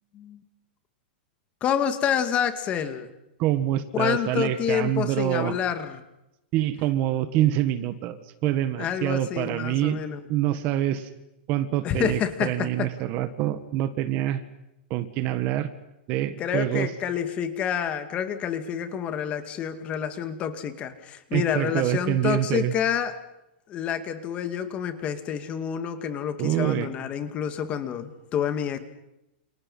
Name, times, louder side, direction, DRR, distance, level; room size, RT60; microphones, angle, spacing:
voice 1, 1.6-3.1 3.9-6.0 8.8-10.2 11.8-12.9 16.4-23.1 23.7-28.8, left 8 dB, 20° left, 9 dB, 2.3 m, -28 dB
voice 2, 3.4-5.6 6.5-10.0 10.3-11.1 11.5-14.4 14.9-15.7 16.1-16.9 21.3-22.7 26.4-26.9, right 13 dB, 30° right, 12 dB, 1.6 m, -26 dB
29.5 x 29.5 x 5.7 m, 0.90 s
supercardioid pair, 170°, 6 cm